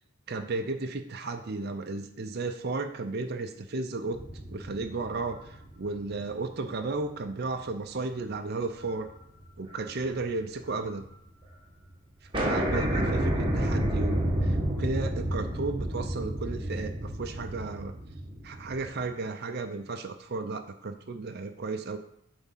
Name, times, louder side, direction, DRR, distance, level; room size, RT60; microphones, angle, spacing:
voice 1, 0.3-4.2 4.5-9.1 9.6-11.1 12.2-17.9 18.4-22.0, right 3 dB, 45° right, 5 dB, 0.5 m, -34 dB
sound 1, 4.1-6.7 7.2-7.3 8.8-9.2 9.4-10.8 11.1-11.2 11.4-11.5 11.8-11.9 12.3-19.0, right 1 dB, 20° right, 1.4 m, -30 dB
7.4 x 3.6 x 5.8 m, 0.74 s
head